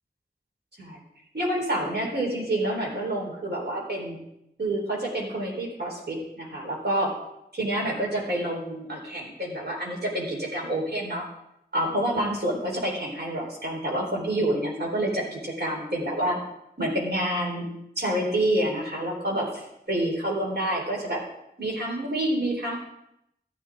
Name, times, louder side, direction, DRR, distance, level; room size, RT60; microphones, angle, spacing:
voice 1, 1.3-4.2 4.6-7.1 7.5-11.3 11.7-16.4 16.8-17.7 18.0-21.2 21.6-22.8, right 1 dB, 80° right, -3 dB, 4.1 m, -28 dB
14.5 x 11.0 x 3.8 m, 0.80 s
wide cardioid pair, 65°, 17 cm